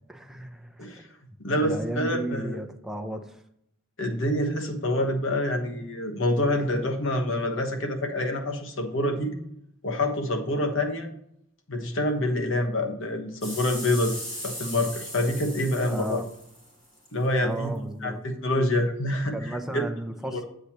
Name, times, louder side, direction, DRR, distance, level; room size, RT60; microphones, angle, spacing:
voice 1, 0.1-0.9 1.6-3.4 10.4-10.6 15.9-16.2 17.4-18.2 19.3-20.4, right 1 dB, ahead, 4 dB, 0.7 m, -34 dB
voice 2, 1.4-2.6 4.0-9.3 9.8-11.1 11.7-14.1 14.4-16.2 17.1-17.7 18.0-19.4 19.7-19.8 20.3-20.4, left 1 dB, 65° left, 4 dB, 1.2 m, -26 dB
sound 1, 13.4-17.1 17.7-17.8, equal, 25° left, 3.2 m, -38 dB
9.6 x 7.9 x 3.0 m, 0.73 s
head